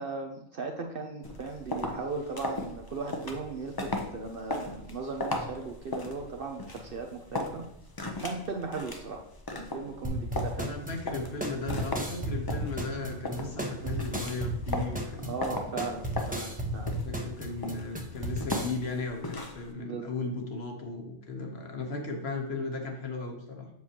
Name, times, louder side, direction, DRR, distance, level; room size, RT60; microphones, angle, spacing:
voice 1, 0.0-7.7 8.2-9.2 9.5-10.7 15.2-17.0 19.8-20.2, right 4 dB, 55° right, 3 dB, 0.7 m, -37 dB
sound 1, 1.2-19.7, left 2 dB, 30° left, 0.4 m, -38 dB
sound 2, 10.0-18.7, right 1 dB, 10° right, 0.7 m, -34 dB
voice 2, 10.6-15.3 17.0-23.7, left 3 dB, 55° left, 3 dB, 1.2 m, -36 dB
7.4 x 6.0 x 2.8 m, 0.84 s
omnidirectional pair, 1.4 m